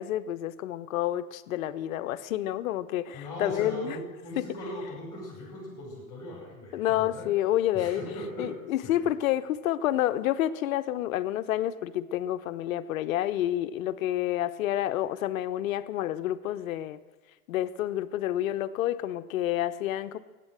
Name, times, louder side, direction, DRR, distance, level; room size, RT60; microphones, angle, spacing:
voice 1, 0.0-4.0 4.4-4.5 6.7-17.0 17.5-20.2, left 13 dB, 60° left, 12 dB, 0.8 m, -29 dB
voice 2, 3.1-7.3 7.7-8.5 8.8-9.1, left 1 dB, 5° left, -3 dB, 5.2 m, -39 dB
15.0 x 9.1 x 7.5 m, 1.2 s
hypercardioid pair, 145°, 46 cm